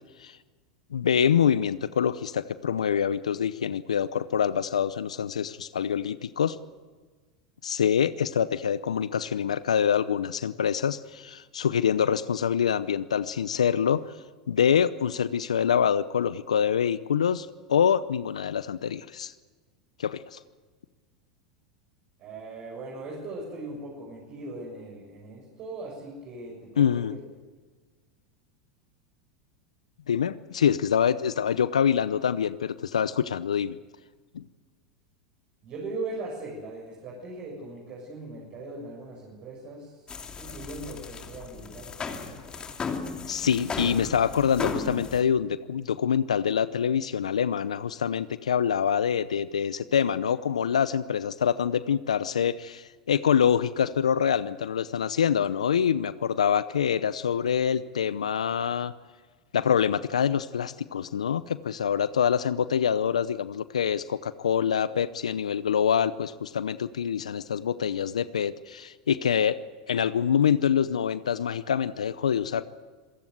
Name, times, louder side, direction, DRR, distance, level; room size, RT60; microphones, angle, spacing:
voice 1, 0.9-6.6 7.6-14.0 14.5-19.3 20.0-20.4 26.8-27.1 30.1-33.8 34.3-34.4 43.3-58.9 59.5-69.6 69.9-72.6, left 8 dB, 90° left, 15 dB, 0.7 m, -25 dB
voice 2, 22.2-27.2 35.6-40.1 40.4-42.6, right 2 dB, 45° right, -2 dB, 6.9 m, -39 dB
sound 1, 40.1-45.2, left 5 dB, 25° left, 2.9 m, -35 dB
27.0 x 15.5 x 8.0 m, 1.4 s
hypercardioid pair, 95°, 3 cm